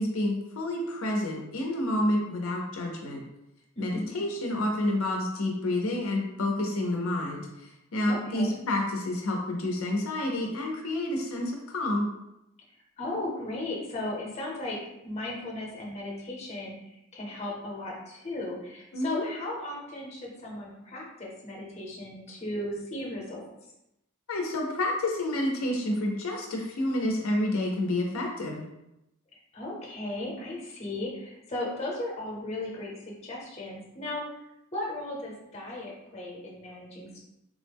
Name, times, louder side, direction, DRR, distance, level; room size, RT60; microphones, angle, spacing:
voice 1, 0.0-3.2 3.8-7.5 7.9-12.1 18.9-19.2 24.3-28.6, left 1 dB, 70° left, 0 dB, 0.5 m, -29 dB
voice 2, 3.8-4.1 8.1-8.5 13.0-14.8 15.0-23.4 29.5-34.2 34.7-37.2, left 1 dB, 30° left, -2 dB, 0.7 m, -36 dB
3.4 x 2.1 x 3.4 m, 0.88 s
head